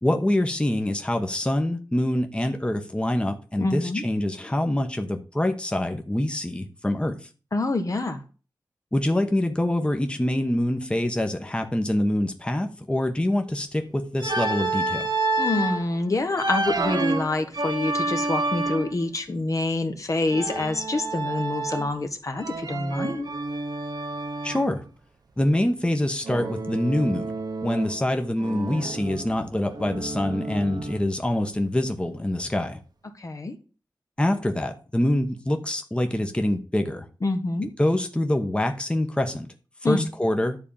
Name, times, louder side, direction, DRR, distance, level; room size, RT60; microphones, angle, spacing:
voice 1, 0.0-7.3 8.9-15.1 24.4-24.9 25.4-27.3 27.6-32.8 34.2-37.1 37.8-39.5 39.8-40.6, left 1 dB, 15° left, 1.1 m, -25 dB
voice 2, 3.6-4.0 7.5-8.2 15.4-23.3 33.2-33.6 37.2-37.7 39.8-40.1, left 2 dB, 45° left, 1.2 m, -26 dB
Organ, 14.2-15.8 16.4-19.0 20.3-22.0 22.4-24.7 26.3-28.1 28.4-31.1, right 2 dB, 60° right, 1.1 m, -29 dB
11.0 x 3.7 x 7.0 m
wide cardioid pair, 85°, 8 cm